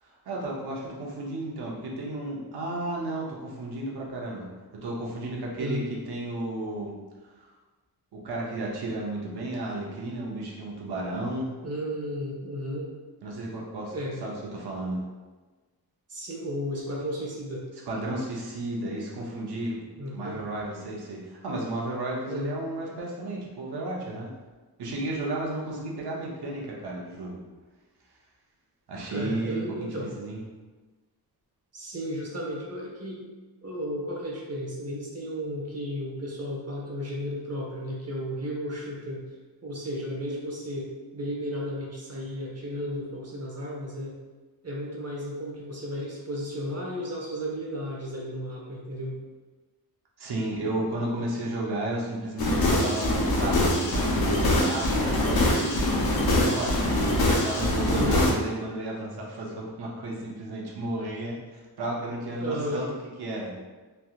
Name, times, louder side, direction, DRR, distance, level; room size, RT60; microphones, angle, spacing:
voice 1, 0.0-4.5 4.8-7.0 7.4-7.5 8.1-11.6 13.2-13.9 14.2-15.0 17.9-19.8 20.1-24.3 24.8-27.4 28.9-30.4 50.2-53.1 53.4-57.0 57.4-63.5, right 2 dB, 80° right, -3 dB, 0.8 m, -33 dB
voice 2, 11.6-12.9 13.9-14.2 16.1-17.7 20.0-20.4 22.3-22.6 29.1-30.1 31.7-33.2 33.6-39.2 39.6-44.2 44.6-49.2 57.9-58.2 62.4-62.9, equal, 40° right, -3 dB, 0.8 m, -34 dB
sound 1, 52.4-58.3, left 1 dB, 70° left, 0.7 m, -23 dB
3.2 x 2.8 x 2.4 m, 1.3 s
wide cardioid pair, 100°, 38 cm